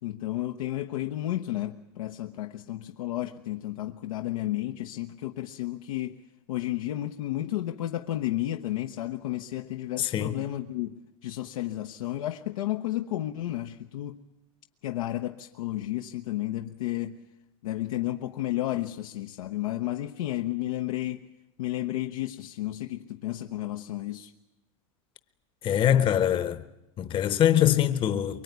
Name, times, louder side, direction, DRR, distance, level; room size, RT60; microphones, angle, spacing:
voice 1, 0.0-6.2 6.5-14.2 14.8-17.2 17.6-21.3 21.6-24.3, left 14 dB, 85° left, 1.1 m, -32 dB
voice 2, 10.0-10.4 25.6-26.6 27.0-28.4, left 10 dB, 30° left, 1.0 m, -23 dB
24.0 x 22.0 x 9.5 m
supercardioid pair, 135°, 17 cm